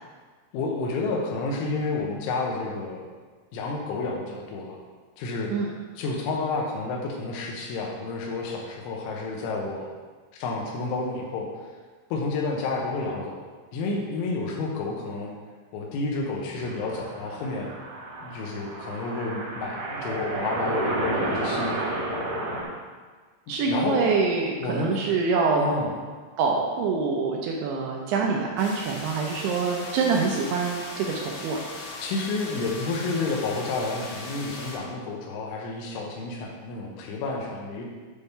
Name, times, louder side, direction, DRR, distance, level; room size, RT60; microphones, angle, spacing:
voice 1, 0.5-3.0 3.5-4.8 5.2-5.5 6.0-9.9 10.3-11.5 12.1-13.4 13.7-15.3 15.7-17.7 18.2-21.9 23.7-24.0 24.6-24.9 25.5-25.9 32.0-37.9, left 3 dB, 85° left, -1 dB, 3.4 m, -30 dB
sound 1, 16.5-22.6, right 2 dB, 65° right, 2.0 m, -31 dB
voice 2, 23.5-25.6 26.4-31.6, right 4 dB, 85° right, 0 dB, 2.3 m, -25 dB
sound 2, 28.6-34.8, left 2 dB, 70° left, 3.1 m, -38 dB
8.9 x 3.4 x 5.4 m, 1.5 s
omnidirectional pair, 5.4 m